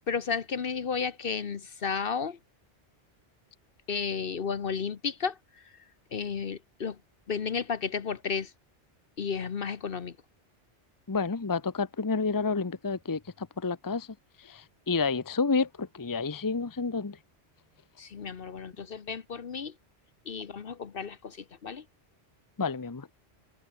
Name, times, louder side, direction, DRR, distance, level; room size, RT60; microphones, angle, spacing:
voice 1, 0.1-2.4 3.9-5.7 6.1-7.0 7.3-8.5 9.2-10.2 18.0-19.7 20.2-21.8, left 6 dB, 50° left, 1.1 m, -33 dB
voice 2, 11.1-14.1 14.4-17.2 22.6-23.1, left 4 dB, 20° left, 0.8 m, -30 dB
omnidirectional pair, 1.2 m